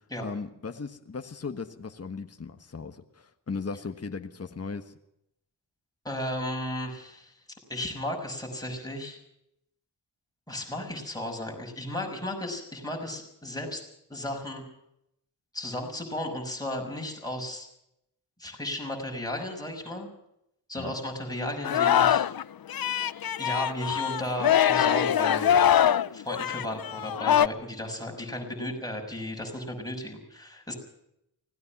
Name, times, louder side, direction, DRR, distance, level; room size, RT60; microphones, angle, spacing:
voice 1, 0.2-5.0 20.8-21.0, left 4 dB, 35° left, 7 dB, 1.4 m, -37 dB
voice 2, 6.0-7.3 7.7-9.2 10.5-13.8 14.1-14.6 15.5-17.7 18.4-20.1 20.7-22.3 23.4-25.6 26.1-30.7, left 1 dB, 10° left, 1 dB, 6.1 m, -34 dB
Singing, 21.6-22.4 22.7-27.5, left 9 dB, 55° left, 0.6 m, -23 dB
25.0 x 17.5 x 6.0 m, 0.80 s
wide cardioid pair, 100°, 42 cm